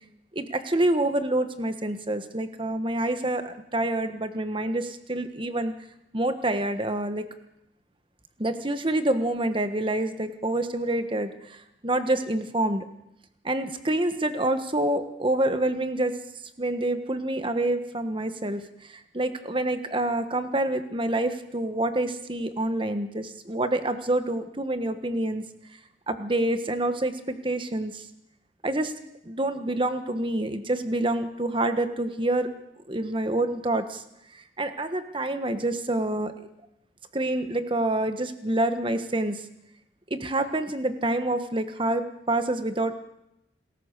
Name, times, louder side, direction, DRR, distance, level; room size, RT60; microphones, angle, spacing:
voice 1, 0.3-5.8 6.1-7.3 8.4-12.9 13.4-16.2 16.6-25.4 26.1-28.0 28.6-28.9 29.2-32.5 32.9-34.0 34.3-36.5 37.1-39.4 40.1-42.9, right 1 dB, 25° right, 9 dB, 1.3 m, -27 dB
27.0 x 14.5 x 6.7 m, 0.83 s
head